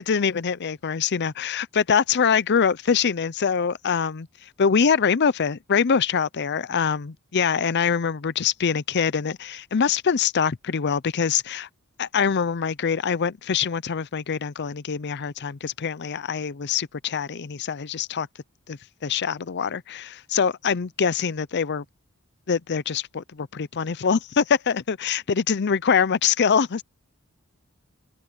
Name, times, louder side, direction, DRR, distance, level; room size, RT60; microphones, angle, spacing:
voice 1, 0.0-11.7 12.0-18.3 18.7-21.8 22.5-26.8, left 6 dB, 50° left, 0.5 m, -24 dB
head